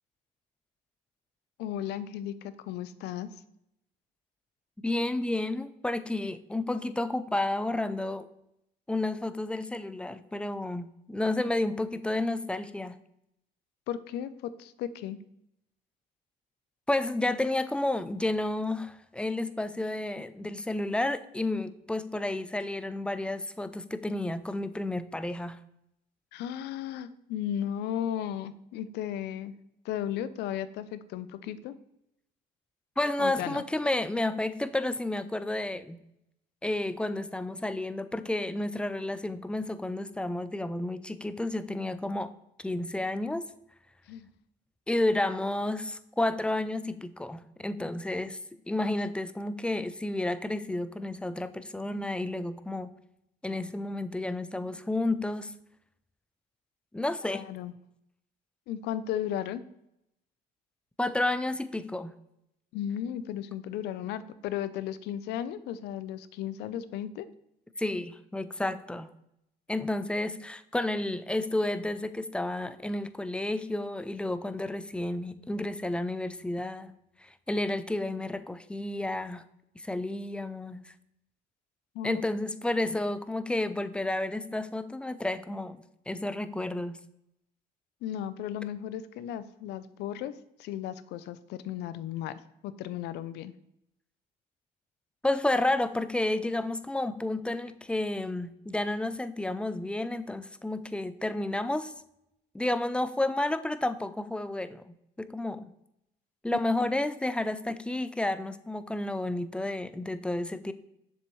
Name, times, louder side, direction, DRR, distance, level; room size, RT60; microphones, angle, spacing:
voice 1, 1.6-3.3 13.9-15.2 26.3-29.5 29.8-31.8 33.2-33.6 44.1-44.3 57.2-57.7 58.7-59.6 62.7-67.3 81.9-82.2 88.0-93.5, left 10 dB, 80° left, 15 dB, 0.5 m, -35 dB
voice 2, 4.8-8.3 8.9-13.0 16.9-25.6 33.0-36.0 36.6-42.3 42.6-43.5 44.9-52.9 53.4-55.5 56.9-57.4 61.0-62.1 67.8-69.1 69.7-79.4 79.8-80.9 82.0-87.0 95.2-101.9 102.5-104.8 105.2-105.7 106.4-110.7, left 2 dB, 5° left, 12 dB, 0.4 m, -31 dB
7.0 x 6.8 x 3.1 m, 0.81 s
cardioid pair, 110°, 17 cm